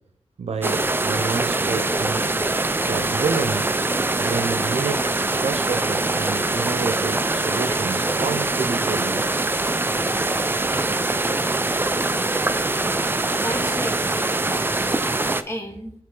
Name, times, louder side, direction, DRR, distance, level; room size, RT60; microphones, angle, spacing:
voice 1, 0.4-2.3 2.9-3.8 4.2-5.1 5.4-9.2, right 4 dB, 85° right, 8 dB, 0.7 m, -28 dB
sound 1, 0.6-15.4, right 2 dB, 20° right, 0.4 m, -23 dB
voice 2, 12.9-14.9 15.4-15.9, equal, 25° left, 1 dB, 1.5 m, -34 dB
9.7 x 3.2 x 3.7 m, 0.68 s
wide cardioid pair, 80°, 11 cm